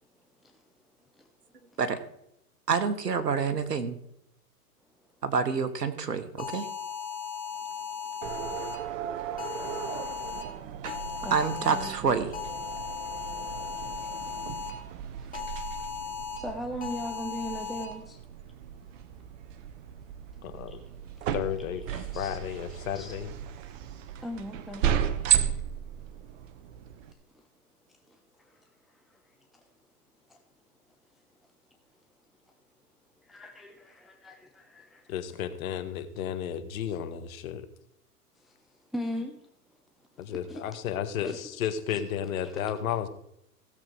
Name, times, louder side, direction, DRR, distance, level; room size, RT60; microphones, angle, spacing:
voice 1, 2.7-4.0 5.2-6.7 11.3-12.3, right 5 dB, 90° right, 1.5 m, -27 dB
sound 1, 6.4-8.8 9.4-10.4 10.8-11.9 12.3-14.7 15.3-16.4 16.8-17.8, left 7 dB, 15° left, 2.8 m, -37 dB
sound 2, 8.2-27.1, right 10 dB, 55° right, 1.3 m, -35 dB
voice 2, 11.2-12.2 14.0-14.1 14.6-14.8 15.2-15.3 16.4-18.2 20.7-20.8 21.9-22.6 22.9-23.2 24.2-25.0 28.4-28.6 30.3-30.4 33.3-35.1 38.4-38.5 38.9-39.4 40.5-40.6 41.2-41.4 41.9-42.0 42.4-42.6 42.9-43.0, equal, ahead, 0.8 m, -39 dB
voice 3, 20.4-20.8 21.3-21.8 22.1-23.3 35.1-37.7 40.2-43.1, left 9 dB, 60° left, 1.5 m, -33 dB
16.0 x 7.5 x 4.7 m
hypercardioid pair, 110°, 47 cm